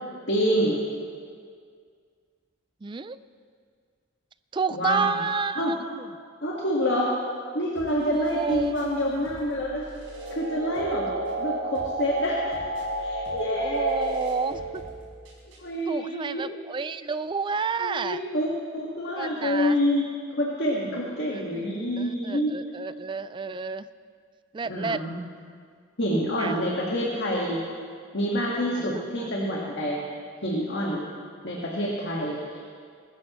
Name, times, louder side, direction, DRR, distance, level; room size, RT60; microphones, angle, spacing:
voice 1, 0.3-0.8 4.7-5.0 5.5-5.7 6.4-7.1 7.5-9.8 10.3-11.1 11.4-12.5 13.0-14.1 15.6-16.5 17.8-20.1 20.3-22.6 24.6-25.2 26.0-27.6 28.1-30.0 30.4-31.1 31.4-32.6, equal, 55° left, -3 dB, 1.7 m, -27 dB
voice 2, 2.8-3.2 4.5-6.1 8.1-8.7 11.1-11.2 13.6-14.8 15.9-18.2 19.2-19.8 21.3-23.9 24.5-25.0 26.4-26.6 28.7-28.9 29.2-29.3, right 5 dB, 25° right, 14 dB, 0.3 m, -30 dB
sound 1, 7.8-15.8, equal, 65° right, 4.2 m, -48 dB
sound 2, 9.9-14.9, right 2 dB, 90° right, 4.1 m, -32 dB
21.5 x 14.0 x 3.1 m, 2.1 s
head